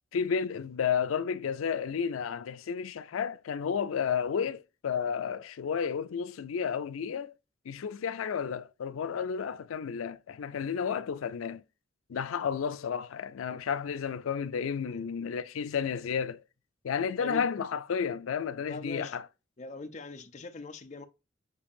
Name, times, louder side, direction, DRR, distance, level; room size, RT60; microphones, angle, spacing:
voice 1, 0.1-7.3 7.7-11.6 12.1-16.4 16.8-19.2, left 7 dB, 90° left, 0.4 m, -32 dB
voice 2, 18.7-19.2 19.6-21.0, left 2 dB, 35° left, 0.5 m, -41 dB
6.9 x 2.7 x 2.5 m
head